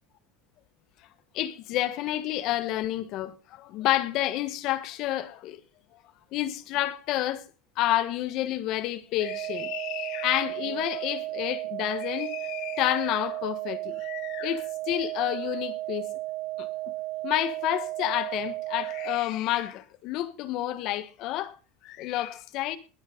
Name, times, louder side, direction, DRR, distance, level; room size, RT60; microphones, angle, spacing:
voice 1, 1.3-5.6 6.3-7.4 7.8-16.1 16.6-16.7 17.2-21.6 21.8-22.8, left 14 dB, 40° left, 1.4 m, -29 dB
sound 1, 9.2-19.2, right 18 dB, 55° right, 1.3 m, -34 dB
20.5 x 8.3 x 5.3 m
cardioid pair, 175°, 0 cm